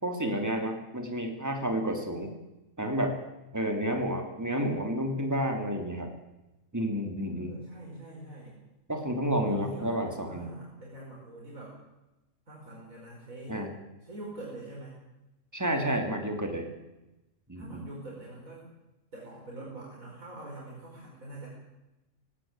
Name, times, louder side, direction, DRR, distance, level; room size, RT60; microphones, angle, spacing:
voice 1, 0.0-2.3 2.8-3.2 3.5-6.1 6.7-7.6 8.9-10.5 13.5-13.7 15.5-16.6 17.5-17.8, equal, 10° right, 4 dB, 3.0 m, -30 dB
voice 2, 7.3-8.6 9.4-11.8 12.5-13.6 14.0-15.0 17.6-18.6 19.1-21.5, right 1 dB, 80° right, -3 dB, 5.6 m, -44 dB
18.0 x 16.5 x 9.0 m, 1.0 s
omnidirectional pair, 1.4 m